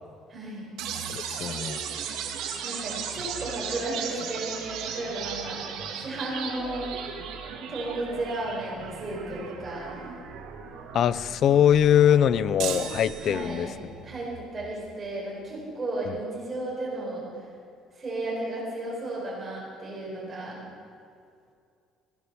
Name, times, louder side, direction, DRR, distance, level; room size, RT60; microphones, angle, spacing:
voice 1, 0.3-0.6 2.6-5.6 6.0-6.9 7.7-10.0 13.2-13.7 14.0-17.2 17.9-20.6, right 2 dB, 20° right, -5 dB, 4.8 m, -34 dB
sound 1, 0.8-14.8, right 7 dB, 75° right, 1.8 m, -37 dB
voice 2, 1.1-1.8 10.9-13.7, left 10 dB, 45° left, 17 dB, 0.4 m, -22 dB
sound 2, 12.6-13.9, right 9 dB, 60° right, 1.0 m, -35 dB
16.0 x 10.0 x 6.8 m, 2.3 s
cardioid pair, 170°, 0 cm